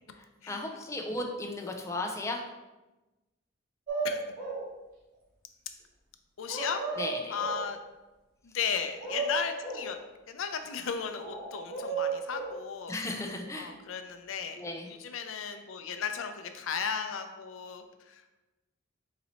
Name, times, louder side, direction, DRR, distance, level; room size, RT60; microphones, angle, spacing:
voice 1, 0.5-2.4 7.0-7.4 12.9-13.7 14.6-14.9, left 2 dB, 15° left, 2 dB, 0.4 m, -35 dB
sound 1, 3.9-4.7 6.5-7.7 8.7-9.9 11.2-12.6, right 4 dB, 40° right, 1.2 m, -34 dB
voice 2, 6.4-6.8 7.3-7.8 8.4-10.0 10.3-13.0 13.6-14.6 14.9-18.4, left 6 dB, 80° left, 7 dB, 0.4 m, -35 dB
4.0 x 2.8 x 4.2 m, 1.1 s
head